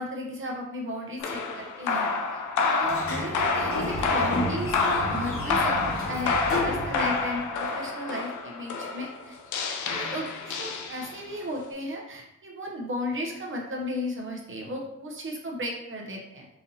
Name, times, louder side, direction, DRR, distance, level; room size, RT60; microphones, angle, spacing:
voice 1, 0.0-9.4 9.9-16.5, equal, 45° right, 0 dB, 0.8 m, -35 dB
sound 1, 1.2-11.4, left 4 dB, 85° left, 0.5 m, -28 dB
Sliding door, 2.8-7.5, left 1 dB, 50° left, 1.0 m, -32 dB
4.1 x 2.6 x 2.7 m, 0.85 s
cardioid pair, 70°, 29 cm